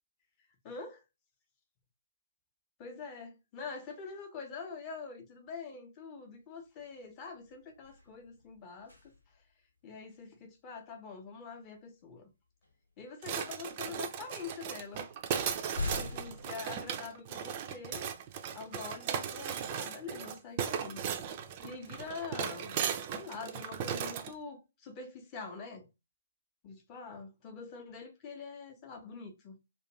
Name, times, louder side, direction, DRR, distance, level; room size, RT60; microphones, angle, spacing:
voice 1, 0.6-1.0 2.8-9.1 9.8-12.3 13.0-15.1 16.0-18.1 18.5-21.0 21.6-22.8 23.1-25.9 26.6-29.6, left 4 dB, 25° left, 0.6 m, -45 dB
sound 1, 6.8-7.0 7.4-9.5 11.6-11.8 12.6-13.4 14.3-14.4 14.8-17.6 18.1-18.2 20.8-23.0, left 3 dB, 85° left, 1.0 m, -45 dB
sound 2, 13.2-24.3, right 8 dB, 30° right, 0.3 m, -37 dB
2.5 x 2.2 x 2.9 m
figure-of-eight pair, 130°, 0 cm